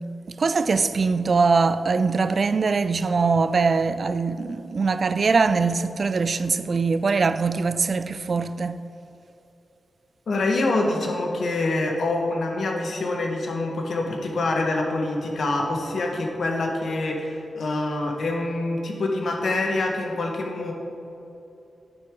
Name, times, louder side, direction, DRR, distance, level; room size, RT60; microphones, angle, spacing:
voice 1, 0.4-8.8, right 4 dB, 50° right, 0.3 m, -22 dB
voice 2, 10.3-20.7, left 2 dB, 70° left, 1.4 m, -25 dB
9.6 x 9.2 x 3.8 m
wide cardioid pair, 100°, 0 cm